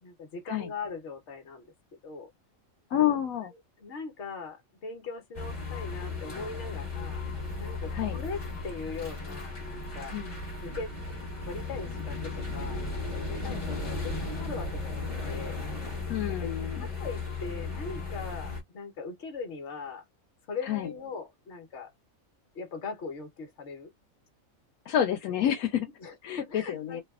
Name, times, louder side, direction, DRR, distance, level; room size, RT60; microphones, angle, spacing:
voice 1, 0.0-1.7 2.0-2.3 3.8-7.2 7.6-10.2 10.6-10.9 11.5-15.6 16.3-16.5 16.8-20.0 20.5-21.9 22.5-23.9 26.0-27.0, left 4 dB, 55° left, 1.2 m, -40 dB
voice 2, 2.9-3.5 7.9-8.2 10.1-10.4 13.5-13.9 16.1-16.9 20.6-20.9 24.9-25.9 26.2-27.0, left 10 dB, 85° left, 1.0 m, -29 dB
sound 1, 5.3-18.6, left 3 dB, 30° left, 1.2 m, -35 dB
3.2 x 2.3 x 2.3 m
omnidirectional pair, 1.5 m